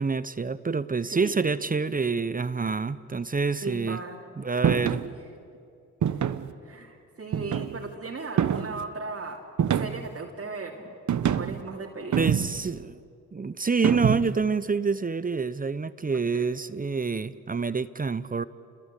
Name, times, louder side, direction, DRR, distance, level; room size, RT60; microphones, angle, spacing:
voice 1, 0.0-4.0 4.4-5.0 12.2-13.0 13.3-18.4, right 4 dB, 25° right, 15 dB, 0.8 m, -27 dB
voice 2, 1.1-1.6 3.6-4.2 5.0-5.1 6.0-6.2 6.6-9.4 9.7-10.8 11.3-12.2 16.1-16.2, right 3 dB, 45° right, -1 dB, 2.9 m, -37 dB
sound 1, 4.6-5.1 6.0-6.5 7.3-7.9 8.4-8.8 9.6-10.2 11.1-11.6 12.1-12.7 13.8-14.4, right 8 dB, 60° right, 1.1 m, -26 dB
29.5 x 21.5 x 8.4 m, 2.5 s
cardioid pair, 65°, 32 cm